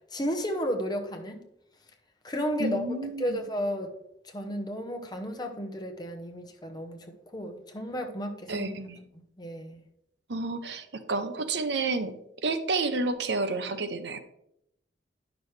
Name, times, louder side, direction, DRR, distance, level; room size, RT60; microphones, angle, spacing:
voice 1, 0.1-1.4 2.2-3.9 4.2-8.7 9.4-9.8, equal, 25° left, 4 dB, 0.9 m, -33 dB
voice 2, 2.6-3.4 8.5-9.0 10.3-12.1 12.4-14.2, right 3 dB, 70° right, 10 dB, 0.7 m, -30 dB
10.0 x 6.1 x 3.2 m, 0.77 s
head